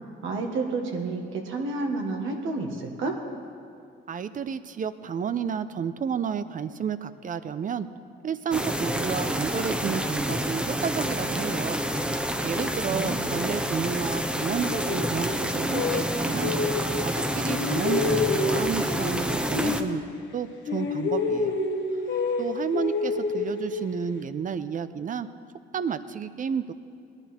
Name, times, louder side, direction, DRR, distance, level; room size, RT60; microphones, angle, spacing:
voice 1, 0.2-3.2 12.9-13.4, right 3 dB, 80° right, 2 dB, 1.7 m, -30 dB
voice 2, 4.1-7.9 8.2-11.8 12.4-16.5 17.0-20.0 20.3-21.6 22.4-25.3 25.7-26.7, right 7 dB, 40° right, 13 dB, 0.6 m, -31 dB
sound 1, 8.5-19.8, equal, 5° right, 0.8 m, -28 dB
sound 2, 14.4-17.2 17.5-20.4 20.7-24.2, left 4 dB, 65° left, 1.5 m, -29 dB
19.0 x 10.5 x 4.4 m, 2.4 s
cardioid pair, 90°, 20 cm